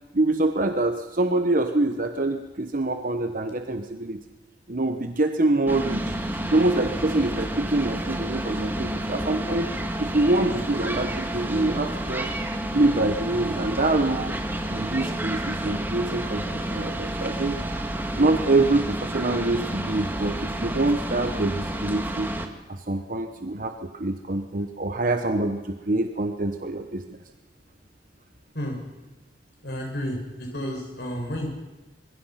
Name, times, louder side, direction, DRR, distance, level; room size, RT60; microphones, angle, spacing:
voice 1, 0.1-4.2 4.7-6.2 6.5-9.7 10.0-12.3 12.7-14.4 14.7-17.6 18.1-22.3 22.7-27.2, right 2 dB, 50° right, 6 dB, 1.2 m, -25 dB
sound 1, 5.7-22.5, right 1 dB, 10° right, 1.9 m, -30 dB
voice 2, 29.6-31.5, equal, 60° left, 1 dB, 6.4 m, -31 dB
26.0 x 21.5 x 5.9 m, 1.2 s
head